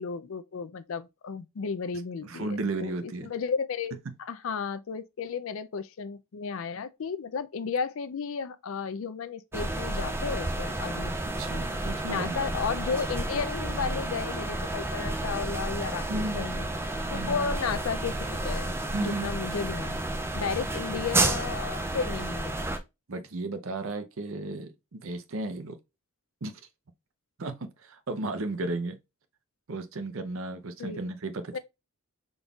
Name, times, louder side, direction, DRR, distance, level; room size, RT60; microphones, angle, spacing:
voice 1, 0.0-11.2 12.1-16.7 17.1-20.0 20.3-22.7 30.8-31.0 31.5-31.6, left 5 dB, 60° left, 0.4 m, -33 dB
voice 2, 2.2-3.3 11.2-12.3 16.1-16.6 17.1-17.5 18.9-19.3 23.1-25.8 26.4-26.5 27.4-29.0 29.7-31.6, right 2 dB, 60° right, 0.6 m, -34 dB
sound 1, 9.5-22.8, right 2 dB, 10° right, 0.3 m, -31 dB
5.2 x 3.9 x 2.3 m
head